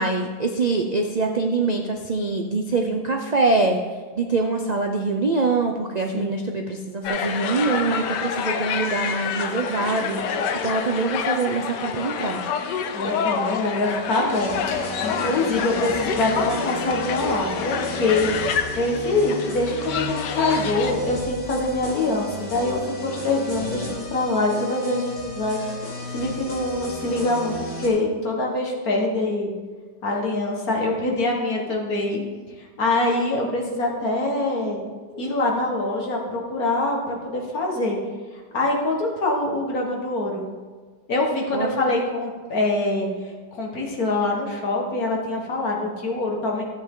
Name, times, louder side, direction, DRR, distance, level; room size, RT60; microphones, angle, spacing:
voice 1, 0.0-3.8 4.1-12.5 41.5-41.7, right 3 dB, 80° right, 3 dB, 0.3 m, -24 dB
sound 1, 7.0-20.9, left 6 dB, 85° left, 1.4 m, -28 dB
voice 2, 12.9-18.3 18.8-25.6 26.1-29.5 30.0-32.2 32.8-34.8 35.1-38.0 38.5-40.5 41.1-43.1 43.5-46.6, left 2 dB, 60° left, 0 dB, 2.1 m, -24 dB
sound 2, 14.3-27.9, left 1 dB, 35° left, 2.9 m, -34 dB
13.5 x 7.9 x 3.8 m, 1.4 s
omnidirectional pair, 1.8 m